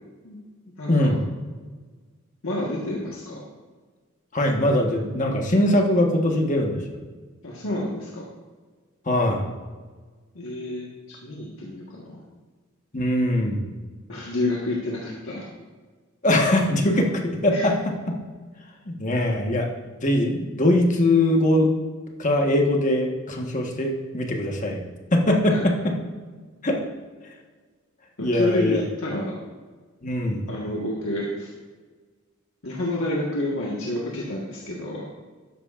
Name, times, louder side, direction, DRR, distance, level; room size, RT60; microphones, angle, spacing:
voice 1, 0.8-1.1 2.4-3.4 7.4-8.3 10.3-12.2 14.1-15.5 17.5-17.7 25.5-25.7 28.2-29.4 30.5-31.5 32.6-35.1, left 1 dB, 75° left, -4 dB, 1.6 m, -29 dB
voice 2, 4.3-7.0 9.1-9.5 12.9-13.7 16.2-17.7 18.1-18.2 19.0-19.7 20.0-21.7 22.2-24.8 25.1-25.7 26.6-26.8 28.2-28.8 30.0-30.5, left 1 dB, 35° left, 1 dB, 1.4 m, -21 dB
13.0 x 10.5 x 2.5 m, 1.4 s
head